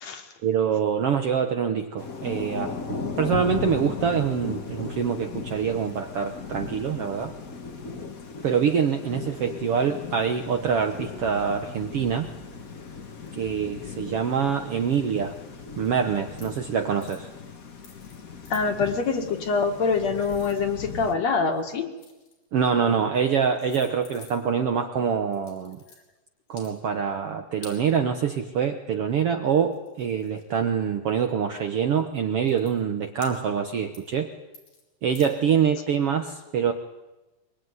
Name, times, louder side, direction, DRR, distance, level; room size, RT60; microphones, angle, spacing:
voice 1, 0.4-7.3 8.4-12.3 13.3-15.3 15.8-17.3 22.5-25.8 26.5-34.3 35.0-36.7, right 7 dB, 60° right, 6 dB, 1.6 m, -25 dB
Thunder / Rain, 2.0-21.1, left 5 dB, 40° left, 1.3 m, -37 dB
sound 1, 16.3-16.6 17.0-17.3 17.8-18.2 18.4-18.6 19.7-21.1 21.5-22.5 23.2-23.3 23.6-24.6 25.3-26.0 26.5-26.7 27.6-27.8 29.3-29.4 29.7-30.8 31.5-31.7 32.1-32.2 32.4-32.7 33.2-33.7 33.9-34.2 34.5-34.8 35.1-35.3, left 4 dB, 90° left, 6.2 m, -49 dB
voice 2, 18.5-21.9, left 5 dB, 55° left, 5 dB, 2.9 m, -25 dB
23.5 x 22.0 x 9.6 m, 1.1 s
omnidirectional pair, 3.8 m